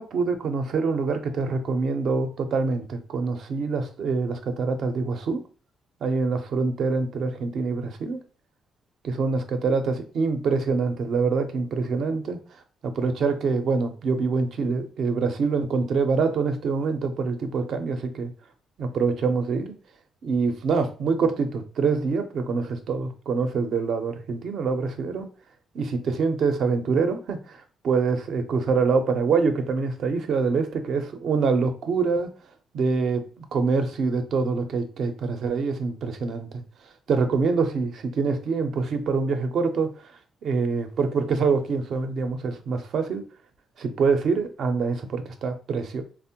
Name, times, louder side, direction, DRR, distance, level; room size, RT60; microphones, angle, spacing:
voice 1, 0.0-5.4 6.0-8.2 9.0-12.4 12.8-18.3 18.8-19.7 20.2-25.3 25.7-32.3 32.7-36.6 37.1-39.9 40.4-43.2 43.8-46.0, right 4 dB, 65° right, 7 dB, 0.5 m, -25 dB
3.4 x 2.0 x 2.7 m, 0.37 s
cardioid pair, 90°, 0 cm